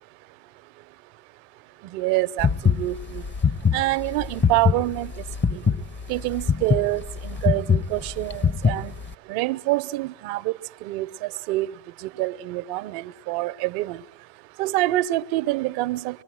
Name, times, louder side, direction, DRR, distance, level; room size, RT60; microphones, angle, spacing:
voice 1, 1.9-3.2 3.7-5.1 5.5-5.6 6.1-8.9 9.3-10.5 10.8-11.7 12.2-14.0 14.6-16.2, right 18 dB, 70° right, 0.9 m, -26 dB
sound 1, 2.4-9.1, left 6 dB, 25° left, 1.2 m, -22 dB
25.0 x 21.0 x 7.9 m
hypercardioid pair, 70°, 48 cm